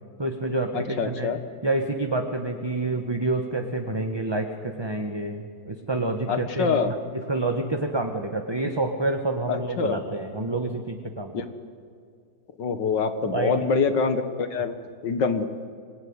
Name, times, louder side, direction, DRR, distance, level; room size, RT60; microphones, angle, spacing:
voice 1, 0.2-1.3 1.6-11.4 13.3-13.5, right 2 dB, 15° right, 4 dB, 1.2 m, -28 dB
voice 2, 1.0-1.4 6.3-6.9 9.5-10.0 11.3-11.4 12.6-14.8 15.0-15.5, left 5 dB, 80° left, 9 dB, 2.2 m, -25 dB
26.0 x 20.0 x 9.7 m, 2.3 s
omnidirectional pair, 1.9 m